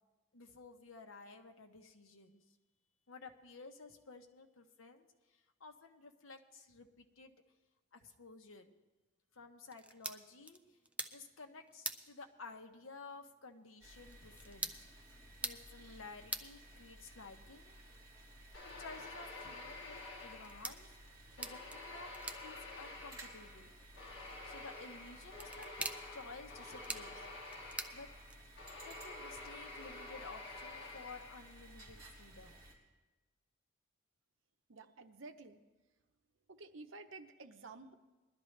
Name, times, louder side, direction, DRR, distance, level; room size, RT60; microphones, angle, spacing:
voice 1, 0.3-2.4 3.1-5.1 5.6-7.3 7.9-8.7 9.3-10.6 11.1-14.8 15.4-17.8 18.6-20.9 21.4-23.7 24.4-27.3 27.9-28.1 28.8-32.6, left 3 dB, 90° left, 6 dB, 1.0 m, -53 dB
sound 1, 9.7-28.7, right 2 dB, 5° right, 0.4 m, -49 dB
sound 2, 13.8-32.7, right 1 dB, 20° right, 3.2 m, -57 dB
sound 3, 18.5-21.0 21.4-31.7, left 2 dB, 55° left, 2.4 m, -50 dB
voice 2, 34.7-35.6 36.5-37.9, right 3 dB, 80° right, 8 dB, 0.9 m, -52 dB
21.0 x 12.0 x 3.3 m, 1.2 s
head